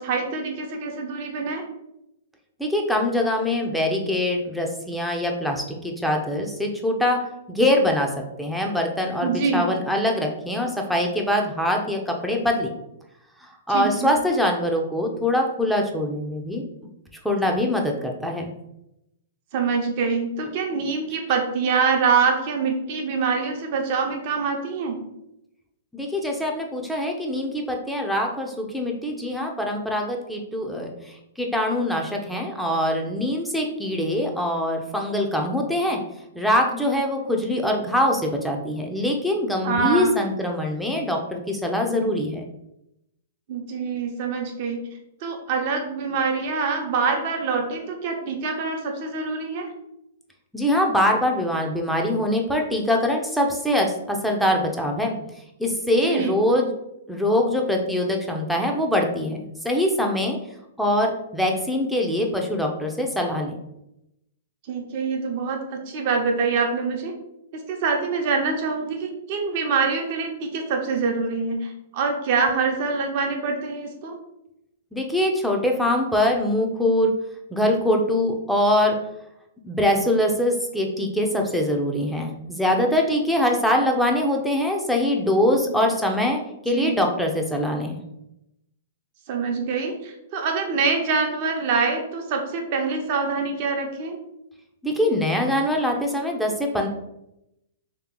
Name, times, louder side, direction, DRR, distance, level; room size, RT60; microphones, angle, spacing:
voice 1, 0.0-1.7 9.2-9.7 13.7-14.2 19.5-25.0 39.6-40.2 43.5-44.8 45.2-49.7 55.9-56.3 64.7-67.1 67.5-74.2 85.6-85.7 86.7-86.9 89.3-94.2, right 5 dB, 50° right, 2 dB, 0.9 m, -25 dB
voice 2, 2.6-8.1 8.4-12.7 13.4-16.6 17.2-18.5 25.9-36.0 36.3-42.5 50.5-55.2 55.6-56.7 57.1-60.4 60.8-63.5 74.9-77.1 77.5-79.0 79.6-88.0 94.8-96.9, left 1 dB, ahead, 1 dB, 0.6 m, -23 dB
3.2 x 3.0 x 3.7 m, 0.84 s
hypercardioid pair, 115°, 0 cm